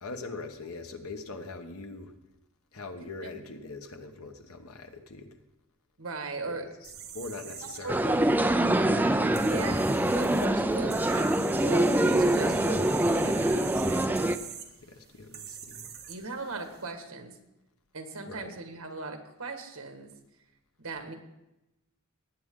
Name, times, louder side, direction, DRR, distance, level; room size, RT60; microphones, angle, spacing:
voice 1, 0.0-2.1 2.7-5.3 6.5-6.6 7.1-8.0 14.8-15.9 18.3-18.5, left 3 dB, 85° left, 6 dB, 1.3 m, -42 dB
voice 2, 6.0-6.7 7.6-8.2 9.3-14.3 16.1-17.3 17.9-20.1 20.8-21.2, right 3 dB, 80° right, 5 dB, 1.8 m, -39 dB
sound 1, 6.8-16.8, right 8 dB, 50° right, 1.5 m, -44 dB
sound 2, 7.9-14.4, right 1 dB, 10° right, 0.5 m, -24 dB
19.0 x 8.6 x 3.8 m, 0.93 s
head